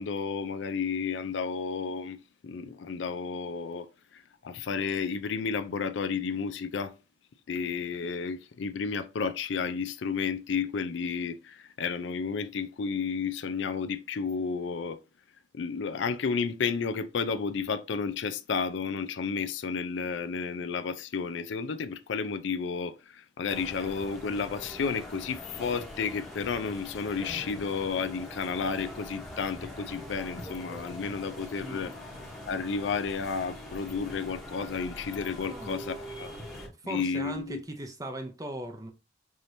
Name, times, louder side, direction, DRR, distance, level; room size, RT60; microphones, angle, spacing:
voice 1, 0.0-2.2 2.4-3.9 4.1-6.9 7.5-15.0 15.5-31.9 32.5-36.3 36.8-37.6, left 5 dB, 70° left, 0.4 m, -32 dB
sound 1, 23.5-36.7, left 1 dB, ahead, 1.0 m, -43 dB
voice 2, 31.6-31.9 35.5-35.8 36.8-38.9, right 1 dB, 20° right, 0.6 m, -38 dB
4.8 x 2.9 x 2.6 m
head